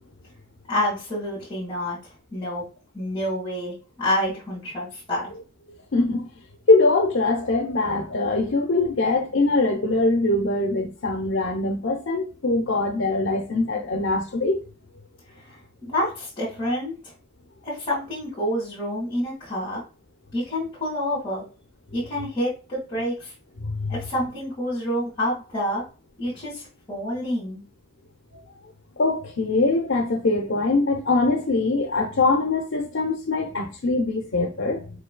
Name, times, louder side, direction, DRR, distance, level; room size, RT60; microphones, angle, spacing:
voice 1, 0.7-2.0 2.3-2.6 2.9-5.3 15.5-15.6 15.8-16.9 17.6-19.8 20.3-21.4 21.9-23.3 23.9-25.8 26.2-27.6, left 1 dB, 25° left, 2.0 m, -28 dB
voice 2, 5.9-6.3 6.7-14.6 23.6-24.0 29.0-35.0, left 2 dB, 70° left, 0.7 m, -22 dB
5.0 x 4.6 x 2.2 m
head